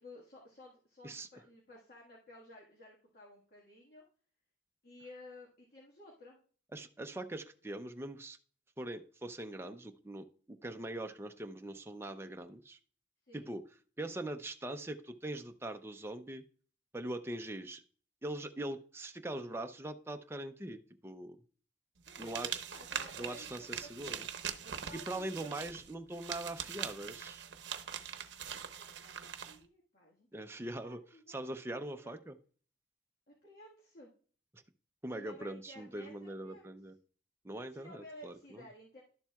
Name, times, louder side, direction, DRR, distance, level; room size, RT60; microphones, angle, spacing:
voice 1, 0.0-4.0 4.8-6.4 13.3-13.5 22.1-24.2 24.6-25.5 28.5-30.3 30.5-31.4 31.9-32.2 33.3-34.1 35.1-36.7 37.7-39.0, left 1 dB, 55° left, -3 dB, 1.7 m, -55 dB
voice 2, 6.7-8.4 8.8-12.8 13.3-13.6 14.0-16.4 16.9-17.8 18.2-21.4 22.2-22.6 23.2-24.2 25.1-27.4 30.3-31.0 31.3-32.4 35.0-36.9 37.4-38.6, right 1 dB, 15° right, 6 dB, 0.5 m, -42 dB
sound 1, 22.1-29.6, right 8 dB, 75° right, 0.7 m, -42 dB
11.5 x 7.2 x 2.3 m, 0.43 s
head